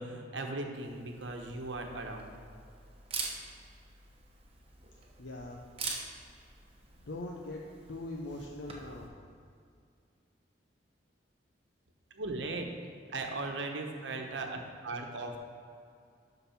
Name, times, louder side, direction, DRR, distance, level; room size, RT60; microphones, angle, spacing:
voice 1, 0.0-2.3 12.1-12.7 13.1-15.4, right 2 dB, 80° right, 3 dB, 1.0 m, -38 dB
Camera, 0.8-9.1, right 4 dB, 30° right, 1.1 m, -45 dB
voice 2, 5.2-5.6 7.0-7.6 7.9-9.1, left 2 dB, 85° left, -1 dB, 0.7 m, -41 dB
11.0 x 4.0 x 5.8 m, 2.3 s
head